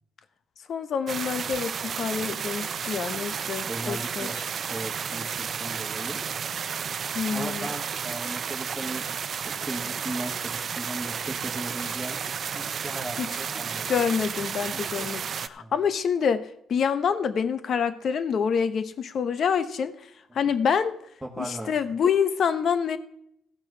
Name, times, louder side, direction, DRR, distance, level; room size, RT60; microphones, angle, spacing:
voice 1, 0.7-4.3 7.1-7.7 13.2-13.3 13.9-19.9 20.3-21.0 21.4-23.0, left 7 dB, 60° left, 11 dB, 1.0 m, -26 dB
sound 1, 1.1-15.5, right 7 dB, 50° right, 0.5 m, -32 dB
voice 2, 3.6-4.4 4.7-6.2 7.3-9.0 9.4-12.2 12.5-13.9 14.7-15.1 15.6-15.7 21.2-21.7, right 1 dB, 5° right, -2 dB, 1.6 m, -37 dB
15.5 x 6.0 x 6.2 m, 0.73 s
cardioid pair, 90°, 0 cm